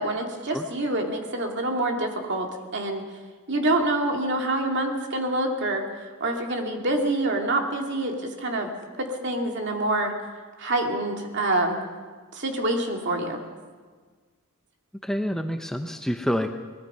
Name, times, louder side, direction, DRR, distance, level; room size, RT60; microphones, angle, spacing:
voice 1, 0.0-3.1 3.5-5.9 6.2-8.7 9.0-10.1 10.6-11.8 12.3-13.4, right 1 dB, 55° right, 3 dB, 2.5 m, -26 dB
voice 2, 15.0-16.5, equal, ahead, 5 dB, 0.7 m, -27 dB
24.0 x 19.5 x 5.6 m, 1.5 s
head